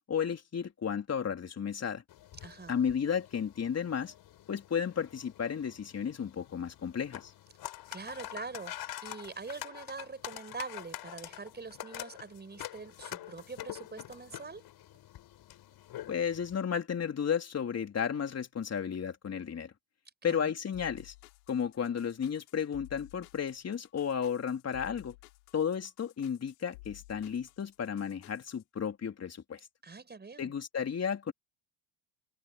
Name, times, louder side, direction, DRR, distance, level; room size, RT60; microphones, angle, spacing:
voice 1, 0.1-2.0 2.7-4.1 4.5-7.3 16.1-19.7 20.2-21.1 21.5-25.1 25.5-29.6 30.4-31.3, left 7 dB, 35° left, 3.8 m, -33 dB
sound 1, 2.1-16.6, left 14 dB, 60° left, 8.0 m, -46 dB
voice 2, 2.4-2.8 7.9-8.8 9.0-14.7 20.2-20.6 29.8-30.5, right 4 dB, 25° right, 5.8 m, -44 dB
sound 2, 20.7-28.6, left 23 dB, 85° left, 6.6 m, -55 dB
hypercardioid pair, 75°, 43 cm